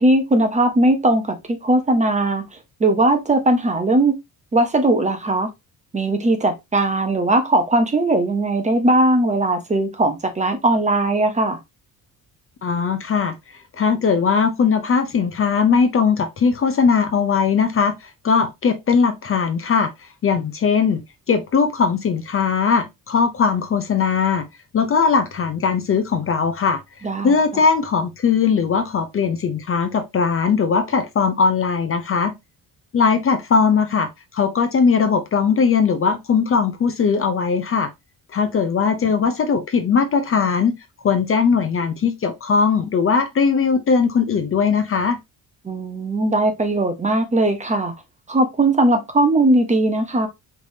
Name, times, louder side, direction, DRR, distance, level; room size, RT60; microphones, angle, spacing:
voice 1, 0.0-2.4 2.8-4.2 4.5-5.5 5.9-11.6 27.0-27.4 45.6-47.9 48.3-50.3, right 2 dB, 20° right, 0.7 m, -19 dB
voice 2, 12.6-13.3 13.8-21.0 21.3-24.5 24.7-26.8 27.2-32.3 32.9-37.9 38.3-40.8 41.0-45.2, left 5 dB, 35° left, 0.6 m, -19 dB
5.0 x 3.3 x 2.7 m
cardioid pair, 155°, 37 cm